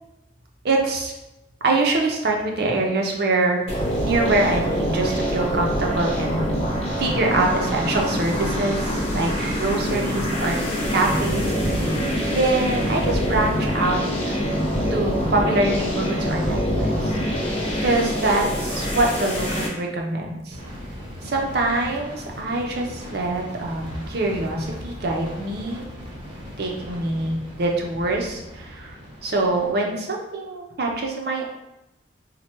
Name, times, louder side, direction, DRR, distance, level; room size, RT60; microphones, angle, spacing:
voice 1, 0.6-1.1 1.6-3.6 4.0-6.5 7.0-10.6 10.9-11.5 12.3-14.0 14.9-17.2 17.8-20.5 21.2-25.8 26.6-29.0 29.2-31.5, right 2 dB, 55° right, 1 dB, 0.6 m, -24 dB
sound 1, 3.7-19.7, equal, 30° left, 0.8 m, -26 dB
sound 2, 3.8-18.2, equal, 65° left, 0.7 m, -31 dB
sound 3, 20.5-29.7, equal, 25° right, 0.8 m, -39 dB
4.3 x 2.2 x 2.9 m, 0.93 s
head